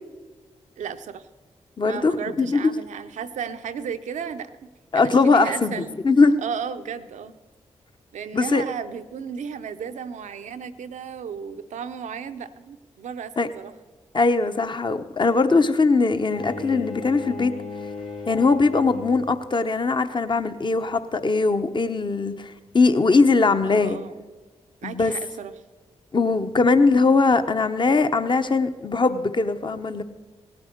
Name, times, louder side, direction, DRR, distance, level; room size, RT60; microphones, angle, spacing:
voice 1, 0.8-1.3 1.8-4.7 4.9-5.9 6.4-7.3 8.1-13.7 23.6-24.3 24.8-25.5, right 7 dB, 80° right, 9 dB, 0.7 m, -34 dB
voice 2, 1.8-2.1 2.4-2.7 4.9-6.3 8.3-8.6 13.4-13.5 14.1-17.5 18.3-24.0 24.8-25.1 26.1-30.0, left 3 dB, 40° left, 9 dB, 0.9 m, -20 dB
Bowed string instrument, 16.3-19.5, left 4 dB, 80° left, 1.6 m, -36 dB
17.5 x 8.9 x 6.6 m, 1.3 s
supercardioid pair, 40°, 12 cm